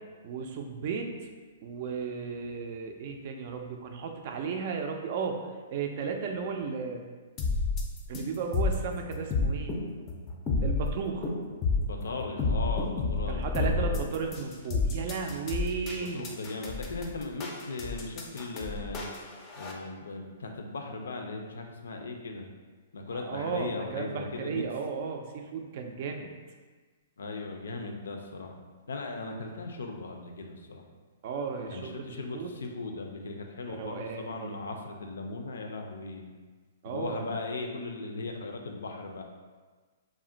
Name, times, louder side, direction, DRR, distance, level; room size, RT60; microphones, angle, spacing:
voice 1, 0.2-1.1 1.6-5.4 5.7-7.0 8.1-9.8 10.6-11.3 13.3-16.3 23.1-26.3 31.2-32.5 33.7-34.6 36.8-37.3, right 5 dB, 50° right, 3 dB, 0.4 m, -34 dB
sound 1, 7.4-19.7, left 3 dB, 25° left, 0.4 m, -30 dB
voice 2, 11.8-14.0 15.9-19.1 19.6-22.5 22.9-24.6 27.2-28.5 28.9-30.9 31.7-36.3 36.8-39.2, left 3 dB, 90° left, 3 dB, 0.4 m, -38 dB
2.4 x 2.1 x 3.7 m, 1.4 s
hypercardioid pair, 145°, 0 cm